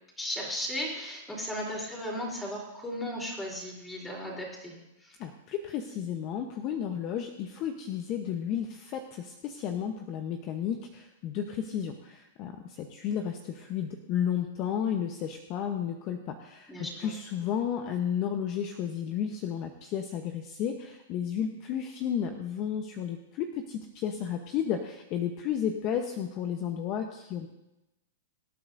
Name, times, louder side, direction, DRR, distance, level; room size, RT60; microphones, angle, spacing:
voice 1, 0.2-5.2 16.7-17.1, equal, 10° left, -2 dB, 3.6 m, -36 dB
voice 2, 5.2-16.7 17.0-27.5, left 8 dB, 40° left, 5 dB, 0.9 m, -32 dB
24.0 x 8.7 x 2.6 m, 0.95 s
hypercardioid pair, 125°, 0 cm